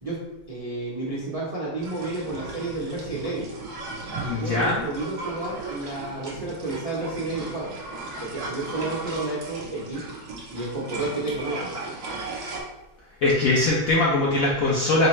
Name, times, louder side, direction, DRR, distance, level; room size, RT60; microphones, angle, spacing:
voice 1, 0.0-3.5 4.2-7.8 8.2-10.0 10.5-12.0, right 2 dB, 40° right, -8 dB, 0.5 m, -31 dB
sound 1, 1.8-12.6, right 3 dB, 60° right, 1.3 m, -36 dB
voice 2, 4.3-4.8 13.2-15.1, left 2 dB, 70° left, -4 dB, 0.8 m, -21 dB
3.9 x 3.3 x 3.1 m, 1.0 s
omnidirectional pair, 2.1 m